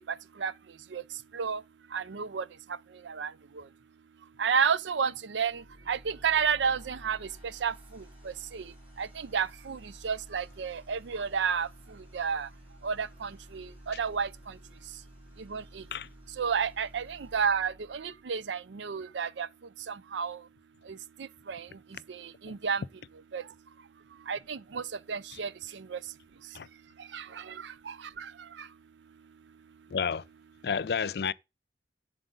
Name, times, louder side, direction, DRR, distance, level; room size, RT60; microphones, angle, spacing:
voice 1, 1.9-2.4 3.2-3.3 4.4-5.6 5.9-7.2 7.6-7.7 8.5-8.6 9.0-9.1 9.3-9.8 10.0-11.7 12.1-12.5 12.8-14.3 15.5-15.8 16.4-19.5 20.1-20.4 21.5-21.6 22.4-22.8 23.3-23.4 24.3-24.8 25.1-25.5 25.9-26.0 27.1-27.2 28.2-28.3, right 6 dB, 90° right, 0.5 m, -30 dB
sound 1, 5.4-18.5, equal, 10° right, 7.7 m, -53 dB
voice 2, 29.9-30.2 30.6-31.3, left 6 dB, 60° left, 0.4 m, -30 dB
11.5 x 7.5 x 3.9 m
head